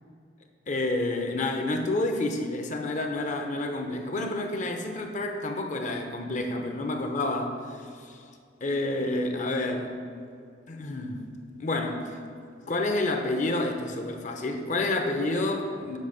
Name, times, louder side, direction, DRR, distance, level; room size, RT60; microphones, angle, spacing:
voice 1, 0.7-8.1 8.6-10.0 10.7-11.3 11.6-12.1 12.7-16.0, left 2 dB, 40° left, 4 dB, 0.6 m, -29 dB
7.3 x 3.4 x 5.6 m, 2.3 s
head